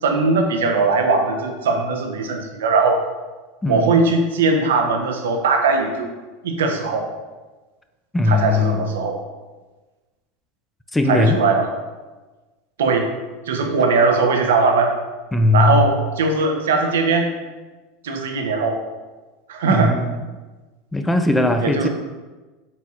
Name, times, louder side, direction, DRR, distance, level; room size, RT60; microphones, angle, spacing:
voice 1, 0.0-3.0 3.7-6.1 6.4-7.1 8.3-9.2 11.1-11.7 12.8-13.1 13.5-14.9 15.5-17.3 18.0-18.8 19.5-19.9 21.6-21.9, right 4 dB, 85° right, 4 dB, 0.6 m, -19 dB
voice 2, 3.6-4.0 8.1-8.9 10.9-11.4 15.3-15.8 19.6-20.2 20.9-21.9, left 2 dB, 10° left, 6 dB, 0.3 m, -19 dB
4.2 x 4.0 x 2.4 m, 1.2 s
hypercardioid pair, 100°, 0 cm